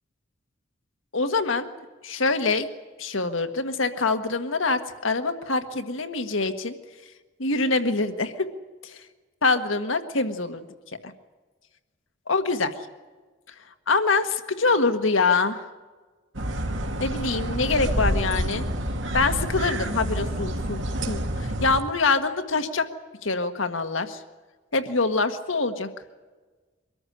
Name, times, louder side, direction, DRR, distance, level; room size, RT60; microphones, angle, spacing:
voice 1, 1.1-1.7 2.0-2.7 3.0-6.7 7.4-8.3 8.8-9.0 9.4-10.6 11.0-11.1 12.3-12.7 13.9-15.6 17.0-18.6 19.1-20.8 21.1-22.9 23.2-24.2 24.7-25.9, left 3 dB, 85° left, 7 dB, 1.6 m, -24 dB
sound 1, 16.3-21.8, right 1 dB, 75° right, 2.2 m, -28 dB
24.0 x 14.0 x 10.0 m, 1.3 s
head